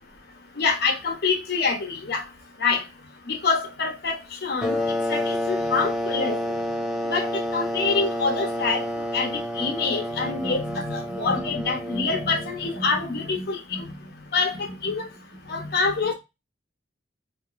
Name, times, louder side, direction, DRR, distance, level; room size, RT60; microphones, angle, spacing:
voice 1, 0.6-2.2 2.6-2.8 3.3-4.8 5.1-6.4 7.1-8.8 9.1-9.3 9.6-13.8 14.3-15.1 15.5-16.1, left 4 dB, 55° left, 0.8 m, -26 dB
sound 1, 4.6-13.0, left 1 dB, 5° right, 0.4 m, -29 dB
3.8 x 2.6 x 2.5 m
head